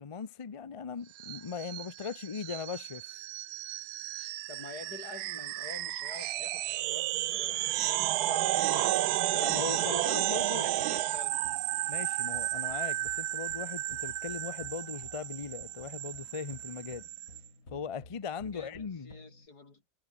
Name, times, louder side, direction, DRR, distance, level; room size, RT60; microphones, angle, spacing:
voice 1, 0.0-3.1 9.3-10.7 11.9-17.1 17.7-19.1, left 6 dB, 35° left, 0.5 m, -39 dB
sound 1, 1.2-17.4, right 15 dB, 90° right, 1.1 m, -33 dB
voice 2, 4.5-9.5 9.7-11.4 18.4-19.8, left 3 dB, 85° left, 4.4 m, -47 dB
sound 2, 9.5-19.5, left 2 dB, 55° left, 6.2 m, -55 dB
omnidirectional pair, 1.7 m